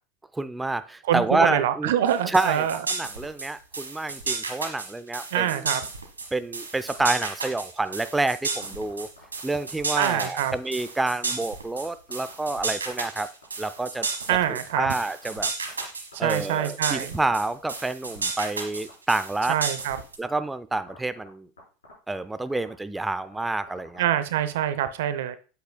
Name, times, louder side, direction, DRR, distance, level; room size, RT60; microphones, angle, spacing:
voice 1, 0.3-1.9 2.3-5.6 6.3-9.1 9.4-13.3 13.6-14.1 14.5-15.5 16.2-19.5 20.2-21.5 22.1-24.0, right 2 dB, 10° right, 12 dB, 0.5 m, -28 dB
voice 2, 1.1-2.8 5.3-5.8 9.9-10.5 14.3-14.9 16.1-17.2 19.5-20.0 24.0-25.4, right 11 dB, 70° right, 12 dB, 0.6 m, -25 dB
sound 1, 2.1-20.2, right 4 dB, 90° right, 1.2 m, -33 dB
sound 2, 6.9-7.4 7.8-8.0 8.6-9.8 10.0-10.2 10.6-10.9 11.3-11.4 11.7-12.5 12.8-15.8 16.1-16.9 17.1-17.7 18.0-18.9 19.3-19.9 20.2-20.4 20.8-21.3 21.6-21.7 21.8-22.2 22.5-24.4, left 3 dB, 85° left, 4.0 m, -49 dB
8.2 x 8.0 x 2.2 m, 0.37 s
hypercardioid pair, 80°, 0 cm